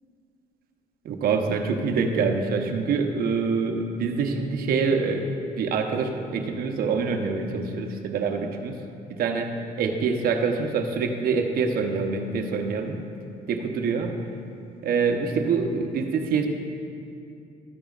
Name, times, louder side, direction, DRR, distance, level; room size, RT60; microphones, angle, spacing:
voice 1, 1.0-5.3 5.6-8.8 9.1-13.0 13.5-14.1 14.8-16.5, right 5 dB, 60° right, 4 dB, 0.9 m, -25 dB
13.5 x 8.8 x 2.4 m, 2.6 s
cardioid pair, 110°, 17 cm